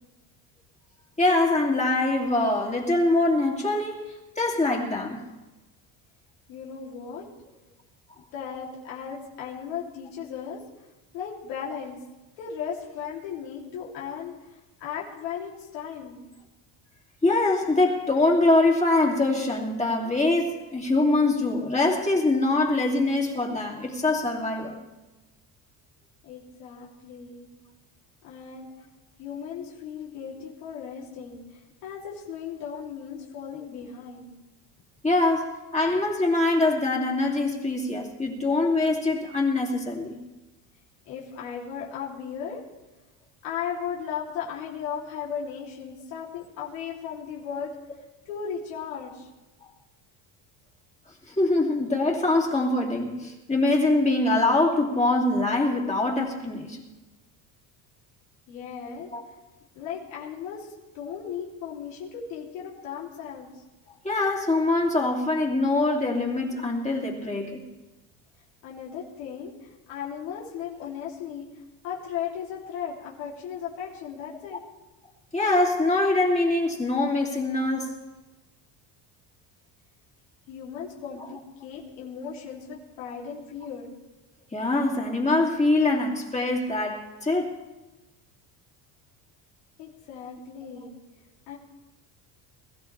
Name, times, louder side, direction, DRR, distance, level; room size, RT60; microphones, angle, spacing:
voice 1, 1.2-5.2 17.2-24.8 35.0-40.2 51.3-56.8 59.1-59.2 64.0-67.6 75.3-77.9 84.5-87.5, left 2 dB, 15° left, -1 dB, 2.6 m, -23 dB
voice 2, 6.5-7.3 8.3-10.6 11.1-12.0 12.4-16.3 26.2-27.5 28.2-28.7 29.2-31.4 31.8-34.3 41.1-42.6 43.4-47.7 48.2-49.3 58.5-59.1 59.7-63.5 68.6-71.5 71.8-74.6 80.5-83.9 89.8-90.9 91.5-91.6, left 7 dB, 90° left, -4 dB, 3.1 m, -36 dB
22.0 x 13.5 x 3.4 m, 1.1 s
cardioid pair, 110°, 45 cm